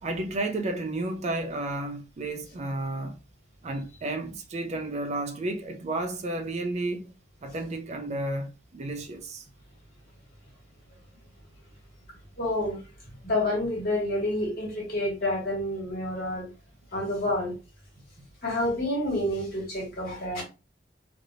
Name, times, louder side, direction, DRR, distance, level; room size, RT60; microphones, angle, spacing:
voice 1, 0.0-3.2 3.6-7.1 7.4-9.5 18.0-18.1, right 2 dB, 35° right, 0.4 m, -32 dB
voice 2, 12.4-12.8 13.2-16.5 16.9-17.5 18.4-20.4, left 1 dB, 55° left, 1.8 m, -28 dB
3.2 x 2.7 x 2.4 m
head